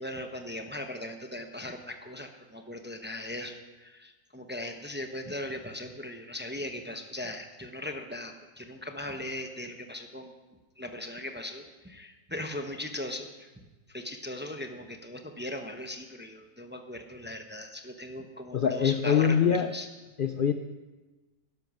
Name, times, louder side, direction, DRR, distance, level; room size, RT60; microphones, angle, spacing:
voice 1, 0.0-10.3 10.8-13.5 13.9-19.9, left 1 dB, 10° right, 5 dB, 0.8 m, -39 dB
voice 2, 18.5-19.7 20.2-20.5, left 7 dB, 55° left, 8 dB, 0.6 m, -24 dB
12.0 x 10.5 x 6.2 m, 1.2 s
omnidirectional pair, 1.4 m